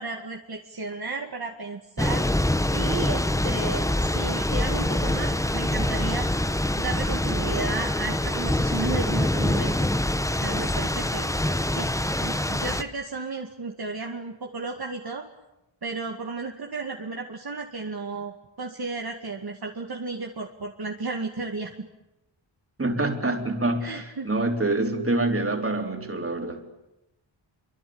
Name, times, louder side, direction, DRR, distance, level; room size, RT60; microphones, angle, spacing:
voice 1, 0.0-2.3 2.7-6.4 6.8-9.9 10.3-11.9 12.2-15.3 15.8-21.7 23.8-24.3, right 3 dB, 55° right, 1 dB, 2.2 m, -33 dB
Thunder / Rain, 2.0-12.8, left 1 dB, 5° left, 0.9 m, -25 dB
voice 2, 22.8-26.6, right 2 dB, 30° right, 3 dB, 3.8 m, -26 dB
27.0 x 24.5 x 8.8 m, 0.94 s
wide cardioid pair, 110°, 46 cm